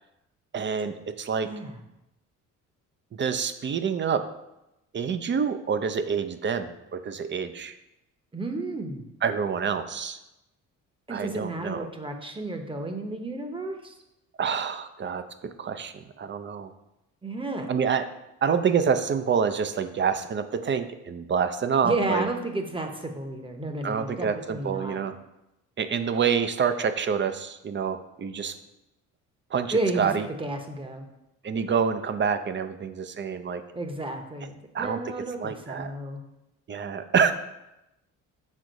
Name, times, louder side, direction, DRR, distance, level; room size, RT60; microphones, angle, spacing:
voice 1, 0.5-1.5 3.1-4.2 4.9-7.8 9.2-10.2 11.1-11.9 14.4-16.7 17.7-18.1 18.4-22.2 23.8-25.1 25.8-28.5 29.5-30.3 31.4-33.6 34.7-35.0 35.4-35.9 36.7-37.3, right 6 dB, 35° right, 10 dB, 0.5 m, -27 dB
voice 2, 1.4-1.8 8.3-9.0 11.1-14.0 17.2-17.7 21.8-25.0 29.7-30.1 30.4-31.0 33.7-36.2, right 2 dB, 15° right, 5 dB, 0.9 m, -32 dB
6.4 x 3.7 x 5.2 m, 0.89 s
cardioid pair, 95°, 32 cm